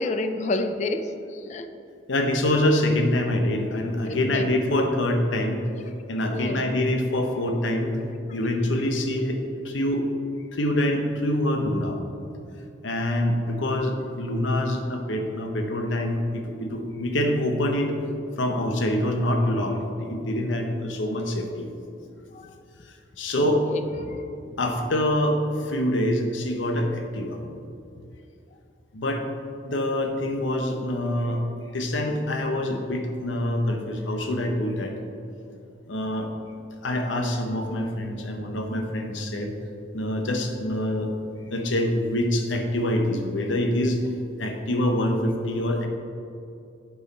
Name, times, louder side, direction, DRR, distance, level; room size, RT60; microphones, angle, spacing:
voice 1, 0.0-1.7 4.1-4.5 6.2-6.6 22.3-22.5 23.4-24.6, left 2 dB, 40° left, 8 dB, 0.3 m, -30 dB
voice 2, 2.1-5.6 6.1-8.0 8.3-10.0 10.5-12.0 12.8-17.9 18.4-21.7 22.9-23.6 24.6-27.4 28.9-29.3 29.6-31.4 31.7-34.9 35.9-36.3 36.8-39.5 39.9-41.1 41.5-44.0 44.4-45.9, left 1 dB, 90° left, 4 dB, 0.9 m, -25 dB
8.5 x 4.7 x 4.1 m, 2.6 s
head